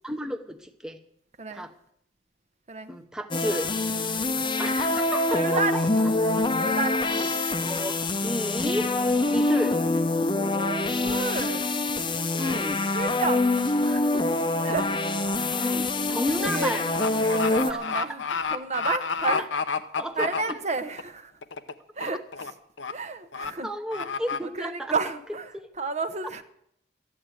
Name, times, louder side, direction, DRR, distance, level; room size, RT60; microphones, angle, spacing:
voice 1, 0.0-1.0 1.5-1.7 2.9-3.7 4.6-5.8 7.6-8.8 9.2-9.8 12.4-12.8 15.6-16.9 17.7-17.8 20.0-20.6 23.6-24.9 25.5-25.7, equal, 5° right, 5 dB, 0.9 m, -32 dB
voice 2, 1.4-1.7 2.7-2.9 4.2-5.0 5.3-6.2 6.6-7.4 9.0-9.3 10.3-11.7 12.3-12.6 12.9-15.9 16.2-16.8 17.2-19.5 20.1-21.3 22.0-22.5 22.9-23.7 24.4-26.4, right 4 dB, 40° right, 10 dB, 0.9 m, -32 dB
sound 1, 3.3-17.7, left 2 dB, 25° left, 0.8 m, -25 dB
sound 2, 14.9-15.2 15.5-21.0 21.4-21.7 22.0-22.5 22.8-22.9 23.3-23.5 23.9-24.4, left 5 dB, 80° left, 0.9 m, -30 dB
14.0 x 8.5 x 9.0 m, 0.72 s
head